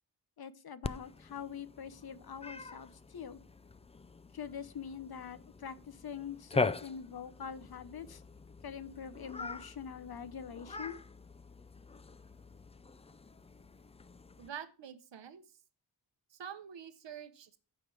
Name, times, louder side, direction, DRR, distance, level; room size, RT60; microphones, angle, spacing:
voice 1, 0.4-3.4 4.3-8.2 8.6-11.0, left 7 dB, 60° left, 13 dB, 0.8 m, -44 dB
Cat, 0.8-14.5, left 3 dB, 15° left, 0.3 m, -42 dB
voice 2, 14.4-15.4 16.3-17.6, right 8 dB, 90° right, 10 dB, 0.9 m, -46 dB
15.0 x 5.0 x 3.3 m, 0.35 s
wide cardioid pair, 75°, 42 cm